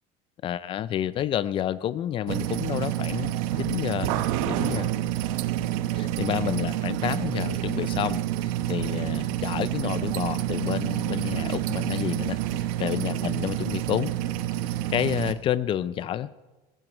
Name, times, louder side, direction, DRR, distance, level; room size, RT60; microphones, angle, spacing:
voice 1, 0.4-3.3 3.6-4.1 4.5-4.9 6.0-14.1 14.9-16.3, left 11 dB, 30° left, 17 dB, 0.4 m, -29 dB
sound 1, 2.3-15.3, right 13 dB, 85° right, 1.0 m, -28 dB
17.0 x 15.5 x 4.4 m, 1.1 s
cardioid pair, 165°, 18 cm